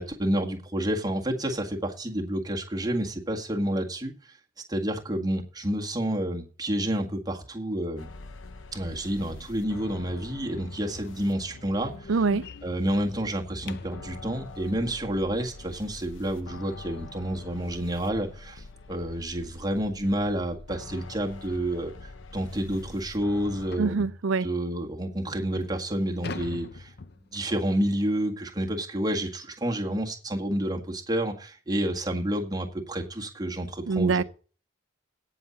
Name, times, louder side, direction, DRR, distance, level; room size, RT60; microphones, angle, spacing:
voice 1, 0.0-4.4 4.7-8.1 8.7-12.1 12.6-21.9 22.3-24.1 24.4-26.9 27.3-34.2, right 1 dB, 20° right, 1.8 m, -29 dB
sound 1, 8.0-23.8, left 3 dB, 75° left, 1.1 m, -45 dB
sound 2, 11.0-14.1 16.9-17.0 17.5-17.7 18.0-18.1 18.6-18.7 19.8-20.0 20.3-20.5 21.2-21.3 21.6-21.7 22.2-22.3 23.7-24.0 24.7-24.8 25.3-27.6, left 4 dB, 55° left, 0.6 m, -43 dB
voice 2, 12.1-12.4 23.8-24.5 33.9-34.2, right 4 dB, 80° right, 0.5 m, -24 dB
17.5 x 6.4 x 4.1 m
head